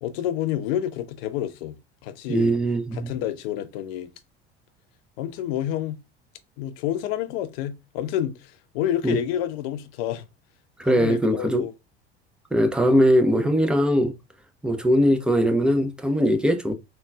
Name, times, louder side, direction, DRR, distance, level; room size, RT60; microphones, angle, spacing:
voice 1, 0.0-2.5 2.9-4.1 5.2-6.0 6.6-10.3 10.8-11.7, left 11 dB, 60° left, 0.6 m, -29 dB
voice 2, 2.3-3.1 9.0-9.2 10.8-11.6 12.5-14.1 14.6-16.7, equal, 5° right, 0.5 m, -20 dB
3.7 x 2.3 x 2.3 m
figure-of-eight pair, 65°, 32 cm